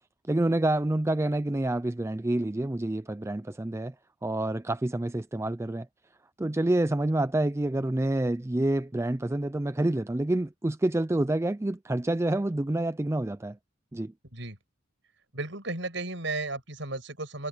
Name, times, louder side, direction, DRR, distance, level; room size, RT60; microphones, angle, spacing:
voice 1, 0.3-3.9 4.2-5.9 6.4-13.6 13.9-14.1, right 1 dB, 15° right, 0.4 m, -28 dB
voice 2, 15.3-17.5, right 2 dB, 65° right, 7.8 m, -34 dB
head